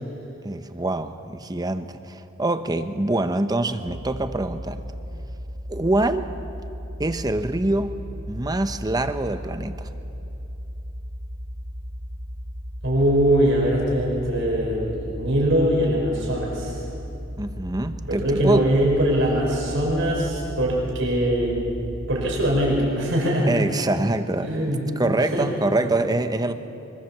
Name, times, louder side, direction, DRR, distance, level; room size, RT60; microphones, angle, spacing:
voice 1, 0.4-4.9 5.7-6.3 7.0-8.0 8.3-9.9 17.4-18.7 23.5-24.5 25.0-26.5, right 2 dB, 20° right, 10 dB, 0.9 m, -25 dB
sound 1, 3.9-22.9, equal, 85° right, 1.9 m, -36 dB
voice 2, 12.8-16.8 18.0-21.7 22.1-23.5 24.4-25.0 25.3-25.5, equal, 65° right, -2 dB, 5.6 m, -22 dB
23.5 x 22.0 x 7.4 m, 2.9 s
head